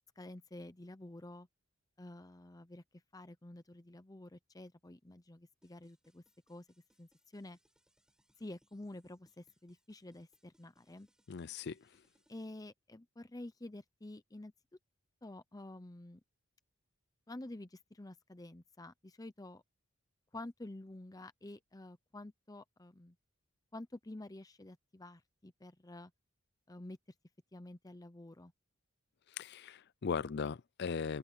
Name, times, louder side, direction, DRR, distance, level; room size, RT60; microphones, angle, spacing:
voice 1, 0.2-1.5 2.0-2.8 3.1-6.2 6.5-6.7 7.0-7.6 8.4-11.1 12.3-14.5 15.2-16.2 17.3-19.6 20.3-23.2 23.7-26.1 26.7-27.0 27.5-28.5, left 1 dB, 15° left, 0.7 m, -49 dB
sound 1, 5.6-12.5, equal, 5° right, 4.4 m, -75 dB
voice 2, 11.3-11.8 29.4-31.2, left 5 dB, 50° left, 0.5 m, -38 dB
head